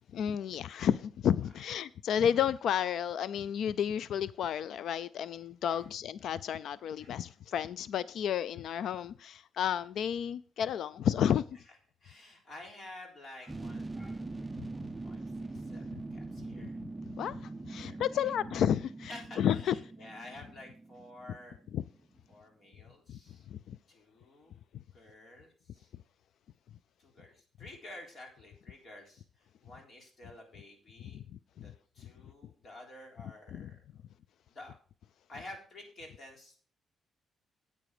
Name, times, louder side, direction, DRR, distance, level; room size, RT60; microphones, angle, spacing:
voice 1, 0.1-11.4 16.8-16.9 17.2-19.7 21.7-21.8 23.1-23.2 23.5-23.8 31.1-31.2 31.6-31.7 33.5-33.7, left 9 dB, 70° left, 0.4 m, -31 dB
voice 2, 1.4-1.8 5.6-5.9 7.0-7.3 11.5-16.8 17.7-18.4 19.0-21.6 22.3-23.5 23.9-24.6 24.9-25.9 27.0-31.2 31.6-33.8 34.5-34.8 35.3-36.6, left 1 dB, 40° left, 3.7 m, -51 dB
sound 1, 13.5-22.0 22.3-22.4, right 2 dB, 15° right, 0.5 m, -43 dB
9.1 x 8.6 x 4.9 m
cardioid pair, 125°, 0 cm